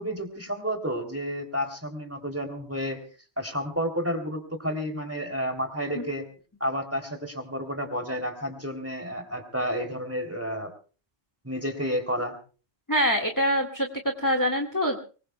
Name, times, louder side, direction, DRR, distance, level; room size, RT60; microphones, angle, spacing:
voice 1, 0.0-3.0 3.4-6.3 6.6-10.7 11.4-12.4, equal, 10° right, 5 dB, 3.1 m, -31 dB
voice 2, 12.9-15.0, equal, 15° left, 3 dB, 1.9 m, -25 dB
24.0 x 21.5 x 2.3 m, 0.37 s
omnidirectional pair, 1.1 m